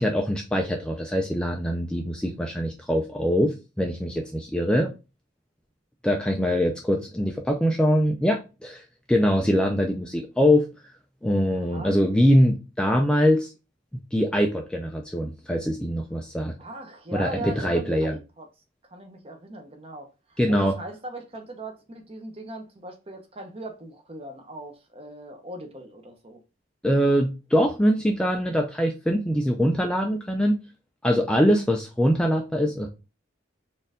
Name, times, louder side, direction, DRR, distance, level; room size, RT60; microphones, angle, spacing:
voice 1, 0.0-4.9 6.0-10.7 11.2-13.5 14.1-16.5 17.1-18.2 20.4-20.8 26.8-30.5 31.0-32.9, equal, 5° left, 0.4 m, -23 dB
voice 2, 11.6-11.9 16.6-18.5 18.9-26.4, right 1 dB, 30° right, 0.8 m, -39 dB
4.3 x 2.6 x 3.5 m
head